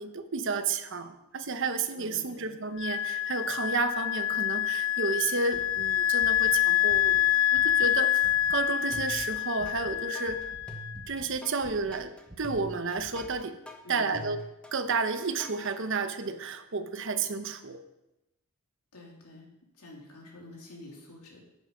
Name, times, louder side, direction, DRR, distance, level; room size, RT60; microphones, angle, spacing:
voice 1, 0.0-10.5 11.1-12.1 12.4-13.6 13.9-14.4 14.7-17.8, right 4 dB, 55° right, 9 dB, 0.8 m, -31 dB
voice 2, 2.0-2.6 13.8-14.3 18.9-19.5 19.7-21.4, left 2 dB, 90° left, -1 dB, 2.8 m, -48 dB
Wind instrument woodwind instrument, 2.8-11.1, left 12 dB, 65° left, 0.5 m, -27 dB
sound 1, 5.5-7.9 8.2-8.6 8.9-10.0 10.2-11.3 11.6-13.4, right 1 dB, 20° right, 1.1 m, -50 dB
sound 2, 8.9-9.8 10.1-15.8, equal, 5° left, 1.0 m, -45 dB
9.8 x 7.3 x 5.5 m, 0.93 s
head